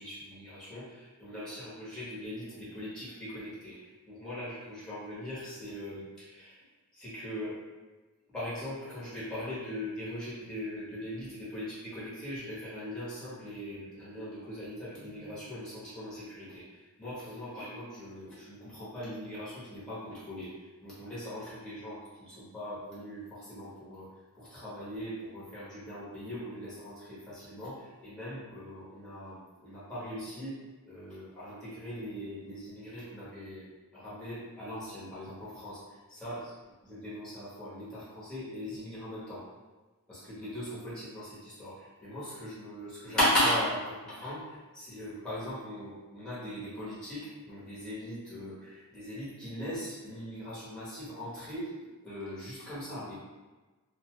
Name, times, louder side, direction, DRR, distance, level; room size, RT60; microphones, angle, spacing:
voice 1, 0.0-6.6 6.9-7.6 8.3-24.1 24.3-30.6 30.8-36.5 36.8-39.4 40.1-51.7 52.0-53.2, equal, 5° left, -11 dB, 1.1 m, -38 dB
2.7 x 2.3 x 3.0 m, 1.2 s
head